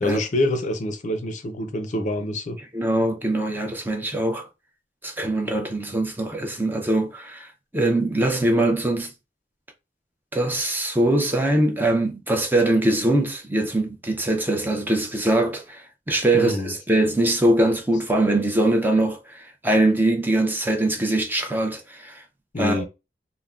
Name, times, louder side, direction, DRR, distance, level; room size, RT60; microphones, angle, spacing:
voice 1, 0.0-2.6 16.3-16.7 22.5-22.8, left 1 dB, 45° left, 0.5 m, -26 dB
voice 2, 2.7-4.5 5.0-9.1 10.3-22.2 22.6-22.8, right 1 dB, 10° right, 0.5 m, -22 dB
3.5 x 2.1 x 2.3 m
head